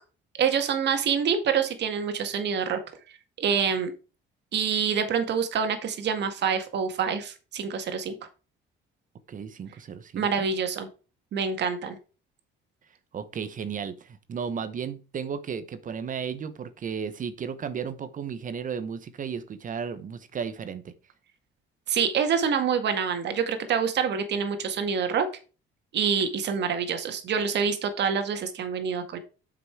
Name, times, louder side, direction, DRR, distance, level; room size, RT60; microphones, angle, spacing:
voice 1, 0.4-2.8 3.4-3.9 4.5-8.1 10.1-10.9 11.3-12.0 21.9-25.3 25.9-29.2, right 6 dB, 55° right, 2.0 m, -26 dB
voice 2, 9.3-10.5 13.1-20.9, right 6 dB, 40° right, 1.0 m, -34 dB
8.0 x 6.0 x 4.6 m
cardioid pair, 130°, 21 cm